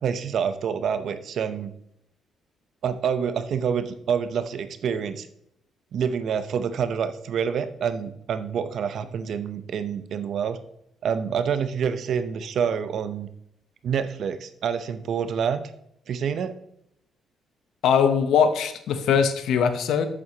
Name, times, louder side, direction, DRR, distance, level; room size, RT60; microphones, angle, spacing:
voice 1, 0.0-1.7 2.8-5.3 5.9-10.6 11.0-13.3 13.8-15.7 16.1-16.5, right 7 dB, 65° right, 11 dB, 0.7 m, -27 dB
voice 2, 17.8-20.1, left 7 dB, 80° left, 9 dB, 0.8 m, -21 dB
7.8 x 7.6 x 2.9 m, 0.76 s
cardioid pair, 90°, 0 cm